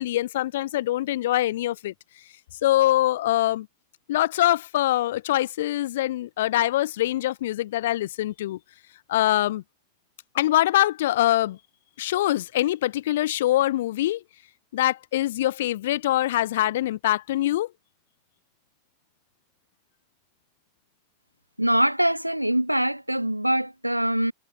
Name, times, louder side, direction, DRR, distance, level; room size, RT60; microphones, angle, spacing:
voice 1, 0.0-1.9 2.6-3.7 4.1-8.6 9.1-9.6 10.3-11.6 12.0-14.2 14.7-17.7, left 14 dB, 55° left, 0.3 m, -24 dB
voice 2, 21.6-24.3, right 1 dB, 90° right, 0.7 m, -23 dB
figure-of-eight pair, 90°, 0 cm